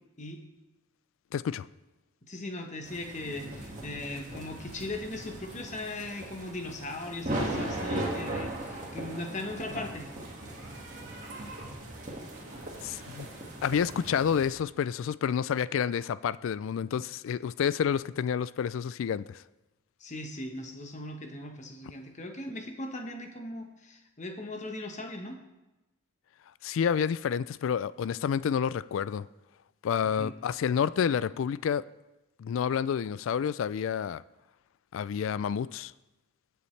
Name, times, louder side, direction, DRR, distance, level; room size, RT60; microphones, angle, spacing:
voice 1, 1.3-1.7 12.8-13.3 13.6-19.4 26.6-29.3 29.8-31.8 32.4-34.2 34.9-35.9, left 7 dB, 70° left, 0.3 m, -29 dB
voice 2, 2.2-10.1 20.0-25.4 30.2-30.3, left 2 dB, 35° left, 1.1 m, -39 dB
sound 1, 2.8-14.5, right 1 dB, 35° right, 1.9 m, -38 dB
sound 2, 9.5-14.1, right 2 dB, 55° right, 2.4 m, -48 dB
19.5 x 7.0 x 3.2 m
head